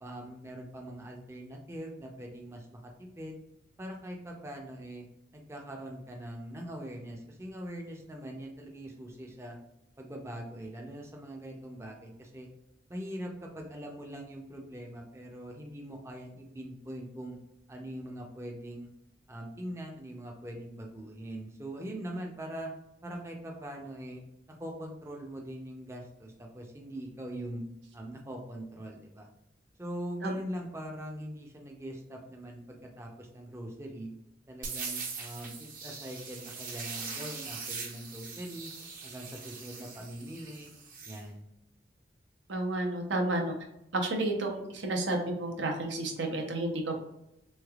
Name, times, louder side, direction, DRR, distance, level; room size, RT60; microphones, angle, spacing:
voice 1, 0.0-3.4 3.8-5.0 5.3-9.6 10.0-12.5 12.9-17.4 17.7-18.9 19.3-22.7 23.0-24.2 24.6-27.6 27.9-29.3 29.8-34.1 34.5-38.7 39.0-40.7 41.1-41.5, right 1 dB, 15° right, 0 dB, 0.5 m, -42 dB
sound 1, 34.6-41.2, right 5 dB, 50° right, 0.7 m, -41 dB
voice 2, 42.5-43.6 43.9-47.0, right 2 dB, 85° right, 2 dB, 0.7 m, -31 dB
3.3 x 3.2 x 2.3 m, 0.83 s
head